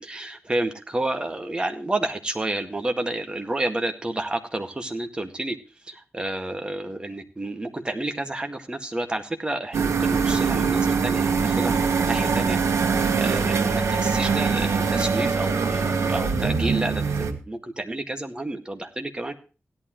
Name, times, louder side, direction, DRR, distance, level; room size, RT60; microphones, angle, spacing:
voice 1, 0.0-5.6 5.9-12.6 13.0-19.3, right 1 dB, 20° right, 5 dB, 2.0 m, -30 dB
sound 1, 9.7-17.3, right 5 dB, 80° right, 1.9 m, -23 dB
16.5 x 11.5 x 3.1 m, 0.35 s
wide cardioid pair, 140°, 5 cm